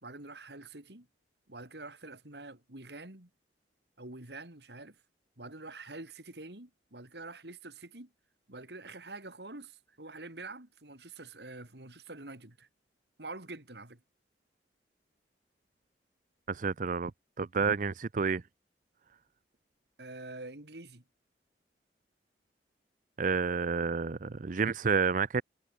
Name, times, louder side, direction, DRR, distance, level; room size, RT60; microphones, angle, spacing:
voice 1, 0.0-1.1 1.5-3.3 4.0-5.0 5.4-8.1 8.5-12.7 13.2-14.0 20.0-21.0, right 2 dB, 70° right, 3.4 m, -46 dB
voice 2, 16.5-17.1 17.4-18.4 23.2-25.4, right 5 dB, 50° right, 0.6 m, -29 dB
head